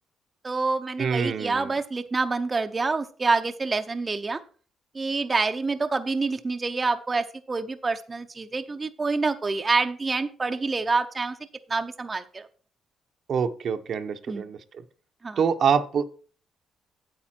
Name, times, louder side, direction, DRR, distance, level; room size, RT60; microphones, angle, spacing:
voice 1, 0.4-4.4 4.9-11.4 11.7-12.5 14.3-14.5 15.2-15.4, right 3 dB, 30° right, 7 dB, 0.7 m, -27 dB
voice 2, 1.0-1.7 13.3-14.6 15.4-16.1, right 6 dB, 60° right, 9 dB, 0.9 m, -25 dB
8.8 x 8.3 x 4.4 m, 0.40 s
cardioid pair, 90°, 0 cm